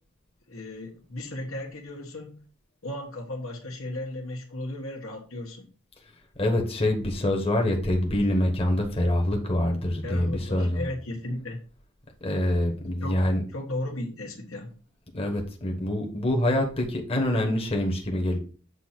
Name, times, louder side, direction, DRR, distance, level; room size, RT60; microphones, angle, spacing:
voice 1, 0.5-2.4 2.8-5.7 10.0-11.6 13.0-13.2 13.5-14.7, left 1 dB, 70° left, 1 dB, 1.6 m, -35 dB
voice 2, 6.4-10.9 12.2-13.4 15.1-18.4, left 1 dB, 25° left, 1 dB, 1.3 m, -25 dB
8.1 x 2.9 x 5.8 m, 0.38 s
head